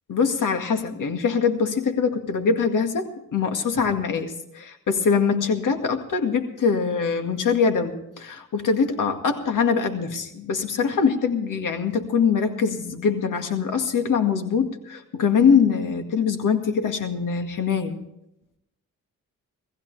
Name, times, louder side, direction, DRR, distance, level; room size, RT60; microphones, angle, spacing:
voice 1, 0.1-18.0, left 6 dB, 75° left, 6 dB, 2.0 m, -23 dB
19.0 x 15.0 x 3.4 m, 0.83 s
cardioid pair, 75°, 32 cm